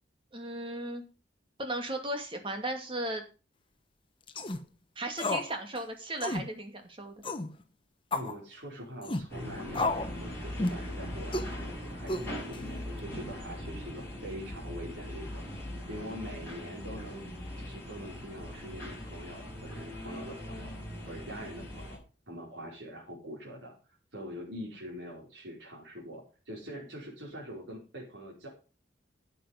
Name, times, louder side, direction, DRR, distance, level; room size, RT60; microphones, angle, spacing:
voice 1, 0.3-1.0 1.6-3.2 5.0-7.2, right 1 dB, 30° right, 4 dB, 2.4 m, -36 dB
sound 1, 4.3-4.6 5.2-5.5 5.8-5.9 6.2-6.5 7.2-7.5 8.1-8.3 9.0-9.3 9.7-10.1 10.6-10.8 11.3-11.5 12.1-12.6, left 2 dB, 30° left, 1.1 m, -31 dB
voice 2, 8.1-15.4 15.9-17.3 17.6-20.7 21.1-22.0 22.3-23.7 24.1-28.5, equal, 80° right, -3 dB, 4.8 m, -44 dB
sound 2, 9.3-22.0, left 1 dB, 10° left, 7.2 m, -41 dB
11.5 x 7.8 x 5.3 m, 0.32 s
head